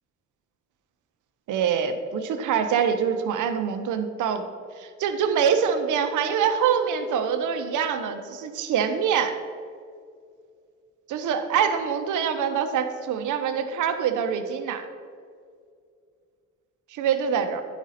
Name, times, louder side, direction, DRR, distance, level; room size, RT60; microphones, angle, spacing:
voice 1, 1.5-4.5 4.8-9.4 11.1-14.9 16.9-17.6, right 7 dB, 80° right, 7 dB, 0.9 m, -25 dB
10.0 x 5.1 x 4.2 m, 2.1 s
cardioid pair, 90°, 30 cm